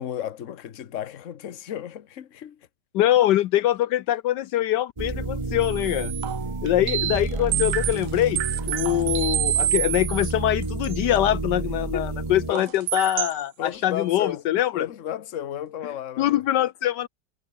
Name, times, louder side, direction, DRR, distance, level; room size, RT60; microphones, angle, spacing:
voice 1, 0.0-2.7 11.9-12.2 12.5-12.7 13.6-14.4 14.7-16.4, left 10 dB, 50° left, 1.3 m, -33 dB
voice 2, 2.9-6.1 6.6-14.9 16.2-17.1, left 13 dB, 75° left, 1.3 m, -23 dB
sound 1, 5.0-12.5, right 3 dB, 20° right, 1.3 m, -30 dB
sound 2, 5.6-7.2 7.5-10.3 10.6-11.2 12.6-13.4 13.7-13.8, right 13 dB, 75° right, 1.4 m, -28 dB
omnidirectional pair, 1.9 m